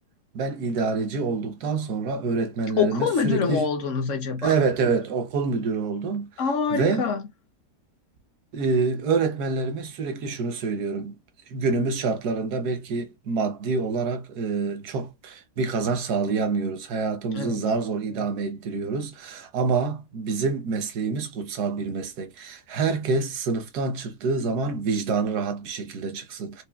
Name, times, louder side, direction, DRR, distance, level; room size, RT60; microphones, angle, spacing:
voice 1, 0.3-3.7 4.4-6.3 6.7-7.0 8.5-11.2 11.5-26.6, right 4 dB, 75° right, 1.3 m, -27 dB
voice 2, 2.8-4.5 6.4-7.2 17.3-17.6, left 5 dB, 60° left, 0.9 m, -25 dB
5.0 x 2.4 x 2.3 m
omnidirectional pair, 1.7 m